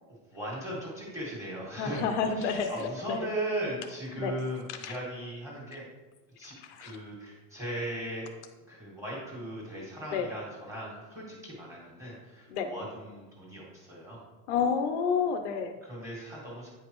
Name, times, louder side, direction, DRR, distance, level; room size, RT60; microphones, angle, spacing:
voice 1, 0.3-2.1 2.4-5.9 6.4-6.5 6.8-8.3 8.7-14.2 15.8-16.7, right 1 dB, 5° right, -5 dB, 1.7 m, -38 dB
voice 2, 1.8-3.2 4.2-4.3 4.7-5.0 6.4-7.0 10.1-10.3 12.5-12.7 14.5-15.8, left 6 dB, 50° left, 7 dB, 0.6 m, -30 dB
9.2 x 5.1 x 3.0 m, 1.2 s
supercardioid pair, 175°, 46 cm